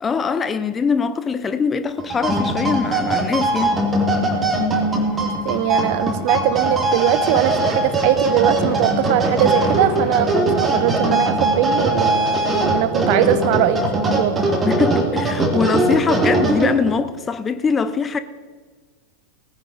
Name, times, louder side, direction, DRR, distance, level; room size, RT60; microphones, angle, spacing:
voice 1, 0.0-3.8 14.7-18.2, left 5 dB, 20° left, 0.7 m, -22 dB
sound 1, 2.0-17.0, right 1 dB, 15° right, 2.7 m, -20 dB
sound 2, 3.0-10.4, left 3 dB, 40° left, 4.1 m, -38 dB
voice 2, 5.2-14.5, right 12 dB, 45° right, 0.9 m, -21 dB
19.0 x 10.0 x 4.3 m
figure-of-eight pair, 90°, 0 cm